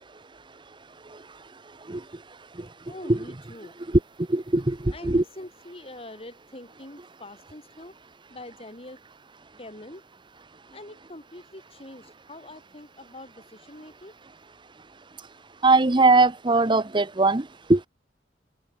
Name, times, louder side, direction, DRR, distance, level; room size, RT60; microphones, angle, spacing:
voice 1, 2.9-3.8 4.9-8.0 8.3-9.0 9.6-10.0 10.7-14.1, left 1 dB, 35° left, 4.7 m, -44 dB
voice 2, 4.3-4.8 5.0-5.2 15.6-17.4 17.7-17.8, right 3 dB, 25° right, 0.9 m, -19 dB
open air
head